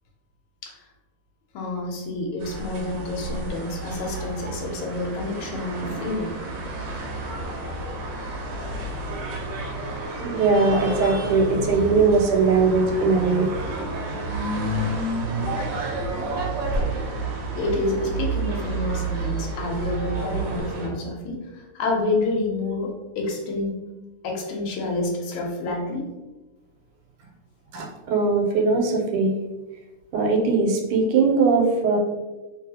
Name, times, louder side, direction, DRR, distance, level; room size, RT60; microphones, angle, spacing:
voice 1, 1.5-6.4 15.4-15.7 17.5-23.8 24.2-26.1, left 2 dB, 80° left, 0 dB, 1.5 m, -28 dB
sound 1, 2.4-20.9, right 2 dB, 70° right, 1.1 m, -30 dB
voice 2, 10.2-13.5 27.7-29.3 30.1-32.0, right 4 dB, 85° right, 1 dB, 1.5 m, -20 dB
3.0 x 2.9 x 2.7 m, 1.1 s
omnidirectional pair, 2.4 m